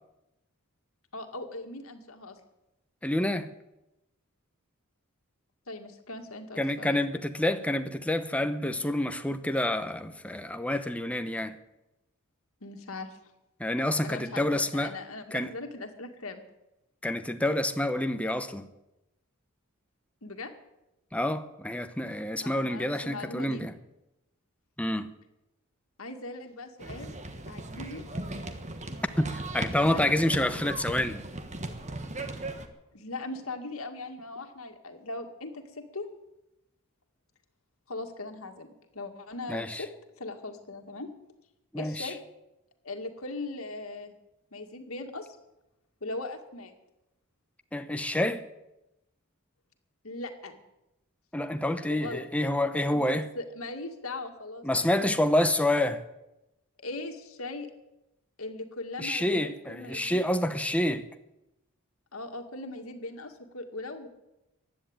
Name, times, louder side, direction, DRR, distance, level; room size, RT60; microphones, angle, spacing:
voice 1, 1.1-2.4 5.7-7.0 12.6-13.2 14.0-16.4 20.2-20.5 22.4-23.8 26.0-27.1 27.5-28.0 29.8-30.1 30.5-30.6 32.9-36.1 37.9-39.9 40.2-41.1 41.8-42.2 42.8-44.1 44.5-45.4 46.0-46.7 50.0-50.6 51.9-52.3 52.9-55.1 56.8-57.7 58.4-60.2 62.1-64.1, left 2 dB, 75° left, 2.0 m, -39 dB
voice 2, 3.0-3.5 6.6-11.5 13.6-15.0 15.3-15.5 17.0-18.7 21.1-23.7 24.8-25.1 29.2-31.2 39.5-39.8 41.7-42.1 47.7-48.4 51.3-53.3 54.6-56.0 59.0-61.1, left 1 dB, 5° left, 0.9 m, -28 dB
sound 1, 26.8-32.7, right 2 dB, 35° right, 1.4 m, -37 dB
15.5 x 10.5 x 8.8 m
head